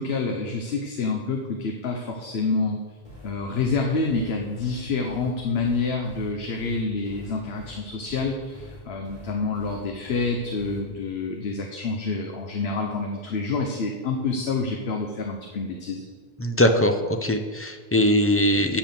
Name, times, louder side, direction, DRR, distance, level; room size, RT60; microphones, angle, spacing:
voice 1, 0.0-2.8 3.2-16.0, left 4 dB, 80° left, 2 dB, 1.1 m, -27 dB
sound 1, 3.0-10.8, left 1 dB, 50° left, 3.4 m, -44 dB
voice 2, 16.4-17.0 17.2-18.8, equal, 15° left, 6 dB, 0.5 m, -21 dB
8.5 x 5.8 x 6.9 m, 1.5 s
omnidirectional pair, 1.0 m